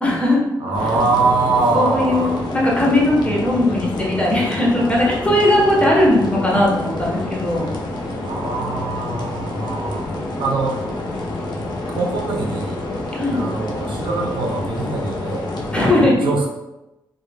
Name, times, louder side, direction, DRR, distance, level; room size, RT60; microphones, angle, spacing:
voice 1, 0.0-0.5 1.7-7.7 13.1-13.4 15.7-16.2, left 1 dB, 15° left, -3 dB, 0.6 m, -18 dB
voice 2, 0.6-2.4 8.2-10.1 10.4-10.8 11.9-12.8 13.3-15.5 16.2-16.5, right 3 dB, 80° right, 0 dB, 0.4 m, -22 dB
sound 1, 0.7-15.9, left 2 dB, 60° left, 0.4 m, -28 dB
2.1 x 2.0 x 3.1 m, 0.97 s
wide cardioid pair, 135°, 8 cm